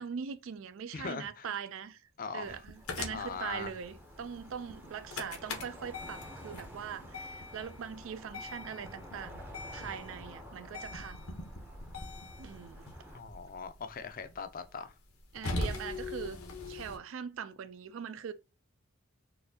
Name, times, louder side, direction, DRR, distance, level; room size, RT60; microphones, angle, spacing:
voice 1, 0.0-9.4 9.7-11.4 12.4-12.9 15.3-16.4 16.7-18.3, right 7 dB, 70° right, 0.4 m, -41 dB
voice 2, 0.9-1.5 2.2-2.6 3.1-3.7 13.1-14.9, left 5 dB, 40° left, 0.4 m, -40 dB
sound 1, 2.5-17.0, left 2 dB, 85° left, 0.8 m, -42 dB
sound 2, 2.8-13.2, equal, 10° right, 0.6 m, -51 dB
4.1 x 2.6 x 2.7 m
head